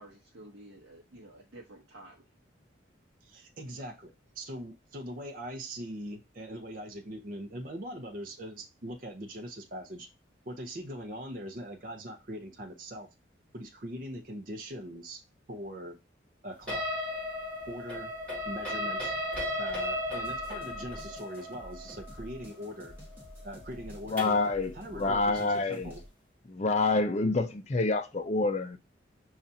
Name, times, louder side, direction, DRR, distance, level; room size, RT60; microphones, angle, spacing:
voice 1, 0.0-2.2, right 1 dB, 75° right, 0.8 m, -51 dB
voice 2, 3.2-10.1 10.5-13.1 13.5-15.2 15.5-16.0 16.4-16.9 17.7-18.1 18.4-19.1 19.6-22.9 23.4-26.0, equal, 45° right, 0.6 m, -41 dB
sound 1, 16.7-24.5, left 1 dB, 5° left, 1.7 m, -35 dB
sound 2, 20.2-26.1, equal, 10° right, 1.1 m, -49 dB
voice 3, 24.1-25.9 26.5-28.8, left 3 dB, 35° left, 0.4 m, -27 dB
5.4 x 2.4 x 2.6 m
head